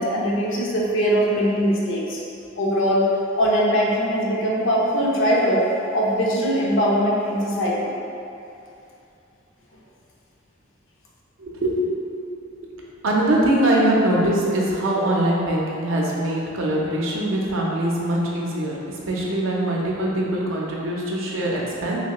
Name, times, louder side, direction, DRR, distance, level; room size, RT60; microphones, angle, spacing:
voice 1, 0.0-2.2 2.6-7.9, equal, 65° left, -4 dB, 0.6 m, -21 dB
voice 2, 11.4-12.0 12.6-12.7 13.0-18.7 19.1-22.0, right 1 dB, 70° right, -3 dB, 0.5 m, -22 dB
3.2 x 2.9 x 2.9 m, 2.6 s
head